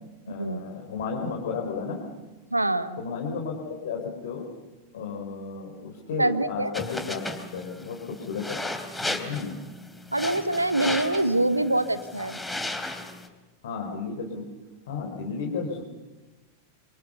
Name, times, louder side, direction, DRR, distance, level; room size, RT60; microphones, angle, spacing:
voice 1, 0.3-2.0 3.0-4.5 4.9-7.2 7.5-8.6 9.0-9.6 13.6-14.4 14.9-15.8, left 5 dB, 60° left, 0 dB, 4.6 m, -33 dB
voice 2, 2.5-3.0 6.2-6.7 10.1-12.4, right 2 dB, 85° right, 12 dB, 1.4 m, -25 dB
sound 1, 6.7-13.3, left 2 dB, 5° left, 3.5 m, -35 dB
27.5 x 26.5 x 7.0 m, 1.2 s
figure-of-eight pair, 90°, 0 cm